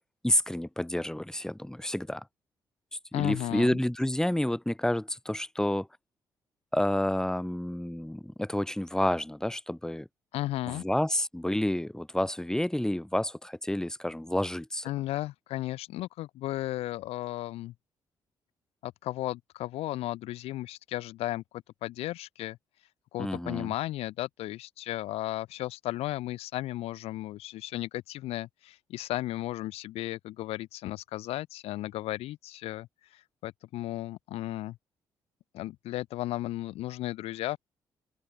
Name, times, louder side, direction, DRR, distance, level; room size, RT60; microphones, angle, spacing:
voice 1, 0.2-2.2 3.1-5.9 6.7-10.1 10.7-14.8 23.2-23.7, left 1 dB, 5° left, 1.5 m, -29 dB
voice 2, 3.1-3.8 10.3-10.8 14.8-17.7 18.8-22.6 23.1-34.8 35.5-37.6, left 16 dB, 70° left, 0.9 m, -35 dB
open air
hypercardioid pair, 45°, 11 cm